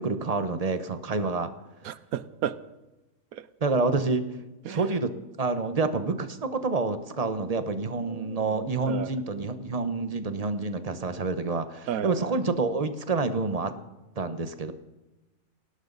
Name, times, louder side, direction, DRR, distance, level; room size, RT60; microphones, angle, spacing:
voice 1, 0.0-1.5 3.6-4.2 4.6-5.1 5.4-13.7 14.2-14.7, right 3 dB, 30° right, 10 dB, 1.0 m, -28 dB
voice 2, 1.8-2.6 3.3-3.5 4.6-4.8 7.4-7.6 8.0-9.2 11.9-12.4, right 9 dB, 85° right, 15 dB, 1.2 m, -34 dB
20.0 x 17.5 x 4.0 m, 1.1 s
omnidirectional pair, 1.5 m